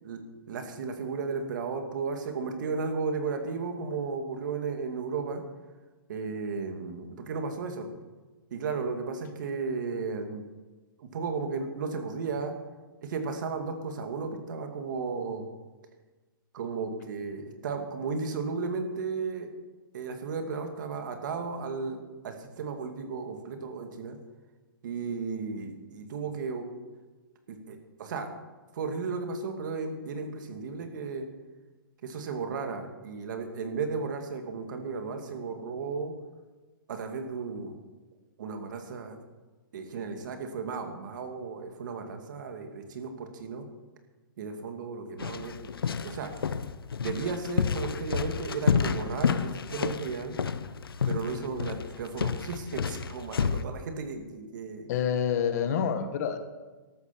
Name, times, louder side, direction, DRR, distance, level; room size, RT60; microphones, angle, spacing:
voice 1, 0.0-5.4 6.1-7.9 8.5-10.4 11.0-12.5 13.0-15.4 16.5-19.5 19.9-24.2 24.8-26.7 27.5-28.3 28.7-31.3 32.0-36.1 36.9-37.7 38.4-39.2 39.7-43.7 44.4-45.7 46.0-46.3 47.0-50.4 51.1-54.9, right 4 dB, 55° right, 5 dB, 2.4 m, -34 dB
sound 1, 45.2-53.6, left 6 dB, 90° left, 0.8 m, -30 dB
voice 2, 54.9-56.4, left 8 dB, 45° left, 8 dB, 1.7 m, -27 dB
13.0 x 12.5 x 6.1 m, 1.2 s
hypercardioid pair, 145°, 12 cm